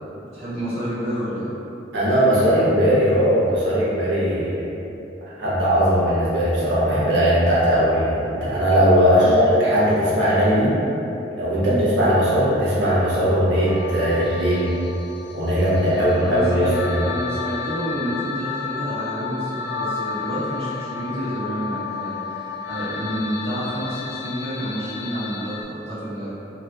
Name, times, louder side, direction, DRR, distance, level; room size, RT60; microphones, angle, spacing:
voice 1, 0.3-1.5 9.1-9.3 11.6-11.8 16.0-16.7 17.0-22.4 22.7-26.3, equal, 35° right, -11 dB, 0.9 m, -29 dB
voice 2, 1.9-4.7 5.4-10.8 11.4-14.7 15.3-17.0, equal, 90° right, -9 dB, 0.8 m, -19 dB
sound 1, 13.6-25.6, left 5 dB, 90° left, 0.3 m, -32 dB
2.9 x 2.5 x 3.3 m, 2.9 s
head